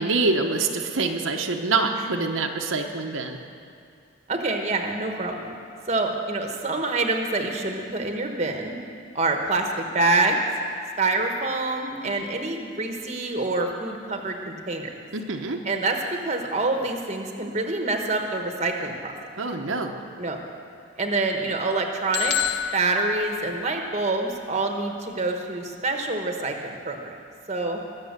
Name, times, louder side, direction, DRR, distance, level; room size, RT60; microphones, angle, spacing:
voice 1, 0.0-3.4 15.1-15.6 19.4-19.9, right 3 dB, 75° right, 3 dB, 0.9 m, -25 dB
voice 2, 4.3-5.5 5.9-8.8 9.1-10.4 11.0-14.9 15.6-19.1 20.2-20.4 21.0-22.4 22.7-27.1 27.5-27.8, right 2 dB, 30° right, 3 dB, 1.1 m, -26 dB
sound 1, 22.1-24.1, left 9 dB, 50° left, 0.4 m, -29 dB
21.5 x 7.2 x 6.7 m, 2.3 s
head